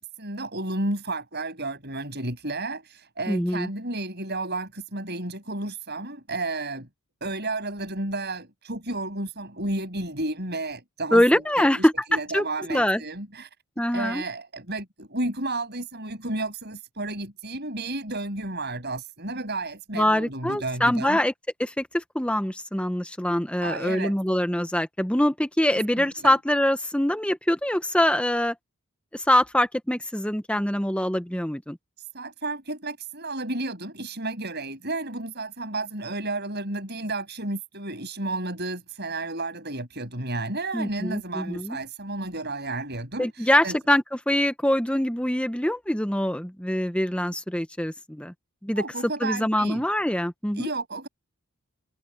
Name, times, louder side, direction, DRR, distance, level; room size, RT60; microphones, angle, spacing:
voice 1, 0.0-6.9 7.2-13.5 13.9-21.2 23.6-24.2 25.7-26.4 32.1-43.8 48.8-49.8 50.6-51.1, right 2 dB, 50° right, 7.8 m, -32 dB
voice 2, 3.3-3.7 11.1-11.9 12.3-13.0 13.8-14.2 19.9-21.3 21.6-28.5 29.1-31.8 40.7-41.8 43.2-48.3 48.6-48.9 49.2-50.7, left 1 dB, 5° left, 1.0 m, -24 dB
head